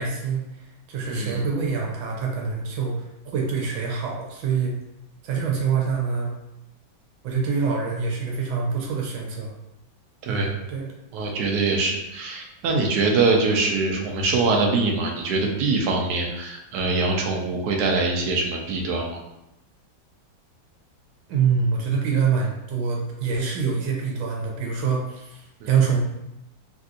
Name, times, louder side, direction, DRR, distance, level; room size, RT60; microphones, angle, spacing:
voice 1, 0.0-4.8 5.2-6.3 7.2-9.5 10.3-10.9 21.3-26.0, right 5 dB, 90° right, 0 dB, 1.5 m, -25 dB
voice 2, 1.1-1.4 10.2-10.5 11.1-19.2 25.6-25.7, right 3 dB, 70° right, 0 dB, 1.0 m, -23 dB
3.4 x 2.6 x 2.4 m, 0.87 s
omnidirectional pair, 2.1 m